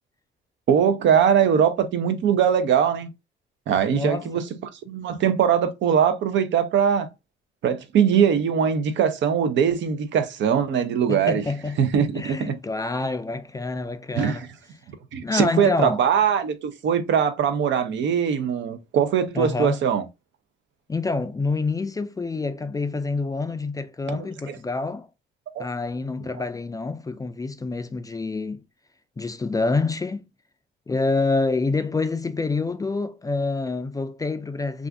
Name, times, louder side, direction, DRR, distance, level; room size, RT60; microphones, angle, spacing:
voice 1, 0.7-3.1 3.7-7.1 7.6-11.4 11.8-12.6 14.2-14.4 15.1-20.0 24.1-24.6 25.5-25.6, right 8 dB, 70° right, 0.6 m, -21 dB
voice 2, 3.9-4.3 11.1-11.8 12.1-14.5 15.2-16.0 19.3-19.8 20.9-25.1 25.6-28.6 29.2-30.2 30.9-34.9, left 3 dB, 20° left, 0.3 m, -27 dB
2.5 x 2.4 x 3.3 m
cardioid pair, 90°, 20 cm